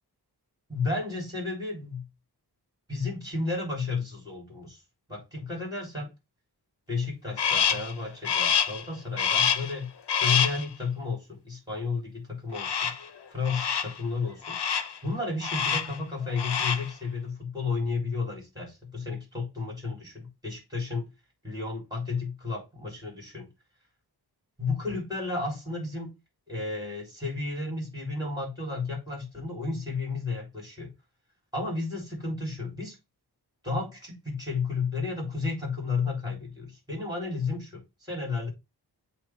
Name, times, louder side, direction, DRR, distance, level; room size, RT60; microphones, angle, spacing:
voice 1, 0.7-2.1 2.9-4.8 5.1-6.1 6.9-9.9 10.2-12.9 13.3-14.6 15.0-21.0 21.4-23.5 24.6-26.1 26.5-30.9 31.5-33.0 33.6-38.5, left 4 dB, 10° right, 3.8 m, -32 dB
Crow, 7.4-7.9 8.2-8.8 9.2-9.7 10.1-10.6 12.5-13.1 13.4-14.0 14.4-15.0 15.4-16.0 16.3-16.9, left 7 dB, 75° left, 0.8 m, -26 dB
8.0 x 2.9 x 4.6 m
wide cardioid pair, 110°, 41 cm